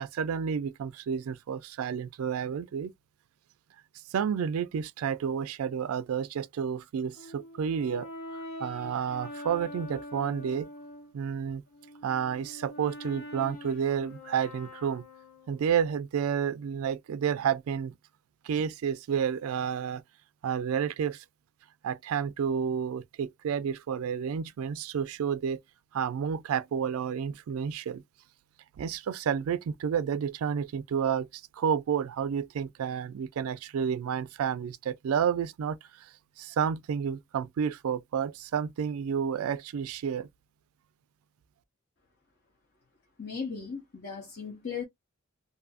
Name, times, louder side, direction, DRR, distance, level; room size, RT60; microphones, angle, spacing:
voice 1, 0.0-2.9 4.1-8.1 8.6-10.7 11.1-11.6 12.0-15.0 15.5-17.9 18.4-20.0 20.4-21.2 21.8-25.6 25.9-28.0 28.8-31.3 31.5-36.1 36.4-40.3, right 7 dB, 80° right, 0.3 m, -30 dB
Brass instrument, 7.1-11.1 11.7-15.7, left 1 dB, 75° left, 1.2 m, -44 dB
voice 2, 43.2-44.8, left 6 dB, 50° left, 0.7 m, -37 dB
2.6 x 2.5 x 2.4 m
head